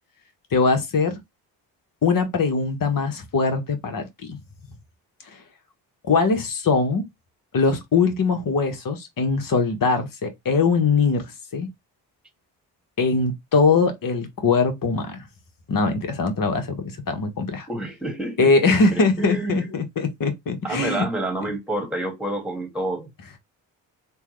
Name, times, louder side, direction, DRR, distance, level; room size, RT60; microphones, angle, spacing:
voice 1, 0.5-1.2 2.0-4.4 6.0-7.0 7.5-11.3 11.5-11.7 13.0-15.2 15.7-17.7 18.4-21.0, left 4 dB, 40° left, 1.2 m, -21 dB
voice 2, 17.7-19.8 20.6-23.1, right 1 dB, ahead, 1.6 m, -28 dB
3.3 x 2.3 x 3.1 m
hypercardioid pair, 45°, 49 cm